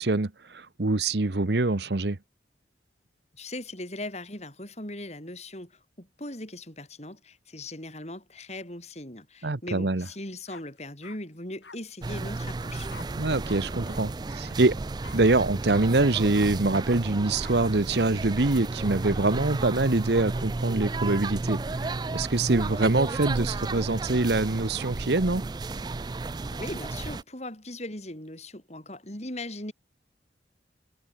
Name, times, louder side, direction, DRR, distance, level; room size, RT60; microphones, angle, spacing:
voice 1, 0.0-2.2 9.4-10.0 13.2-14.8 15.1-25.4, right 2 dB, 70° right, 1.1 m, -25 dB
voice 2, 3.3-12.9 26.5-29.7, left 1 dB, 35° left, 7.7 m, -39 dB
sound 1, 10.0-10.1 10.5-11.2 11.6-11.8 12.9-13.1 13.4-13.6 13.9-14.0 14.4-14.5 15.0-15.2 15.7-15.8 16.3-16.5 17.4-17.5, left 4 dB, 75° left, 7.7 m, -47 dB
sound 2, 12.0-27.2, right 3 dB, 25° right, 0.3 m, -33 dB
head